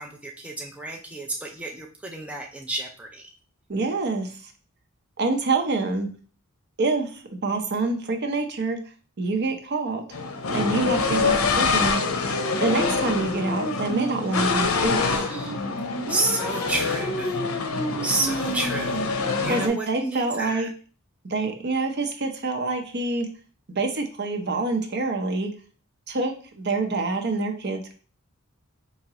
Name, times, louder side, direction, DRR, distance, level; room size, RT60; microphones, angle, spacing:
voice 1, 0.0-3.3 15.0-15.6 16.1-17.4 18.0-19.1 19.4-20.7, right 2 dB, 5° right, 0 dB, 0.4 m, -30 dB
voice 2, 3.7-4.5 5.2-6.1 6.8-8.8 9.2-10.0 10.5-12.0 12.6-15.2 19.5-20.7 21.2-23.3 23.7-25.5 26.1-27.9, right 3 dB, 55° right, 4 dB, 0.7 m, -26 dB
sound 1, 10.1-19.7, left 3 dB, 85° left, 0.6 m, -25 dB
4.7 x 2.9 x 2.8 m, 0.40 s
head